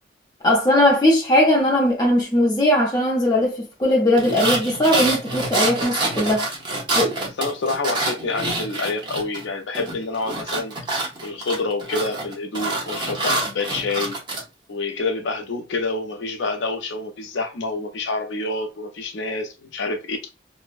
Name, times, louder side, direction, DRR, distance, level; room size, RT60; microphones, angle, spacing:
voice 1, 0.4-6.5 7.0-7.2, left 1 dB, 20° left, 0.5 m, -19 dB
sound 1, 4.2-9.5 9.7-14.4, right 2 dB, 25° right, 0.6 m, -26 dB
voice 2, 7.4-10.8 11.2-14.2 14.7-20.2, left 3 dB, 75° left, 0.5 m, -27 dB
2.6 x 2.0 x 2.3 m
head